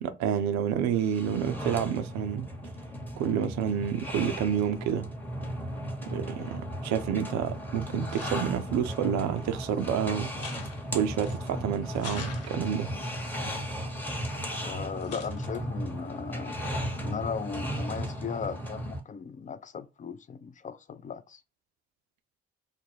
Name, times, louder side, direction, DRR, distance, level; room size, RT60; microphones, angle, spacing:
voice 1, 0.0-2.5 3.2-5.1 6.0-10.3 10.9-12.9, right 8 dB, 65° right, 0.5 m, -29 dB
sound 1, 0.9-19.0, equal, 5° left, 0.8 m, -36 dB
sound 2, 7.3-7.4 7.9-8.7 9.4-9.9 10.3-11.5 11.9-12.9 13.4-14.7 15.0-15.6, left 5 dB, 50° left, 0.7 m, -45 dB
voice 2, 14.6-16.6 17.0-21.4, left 6 dB, 25° left, 0.3 m, -37 dB
2.4 x 2.1 x 3.1 m
hypercardioid pair, 40°, 30 cm